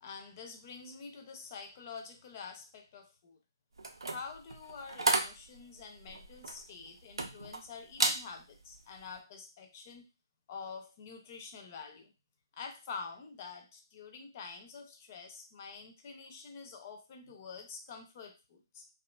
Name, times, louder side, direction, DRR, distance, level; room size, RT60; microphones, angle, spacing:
voice 1, 0.0-3.4 4.1-10.1 10.5-12.1 12.5-18.9, left 5 dB, 35° left, 4 dB, 0.5 m, -47 dB
sound 1, 3.8-7.6 7.9-8.2 8.7-9.0, right 2 dB, 80° right, 0.5 m, -33 dB
2.6 x 2.4 x 2.2 m, 0.29 s
figure-of-eight pair, 150°, 2 cm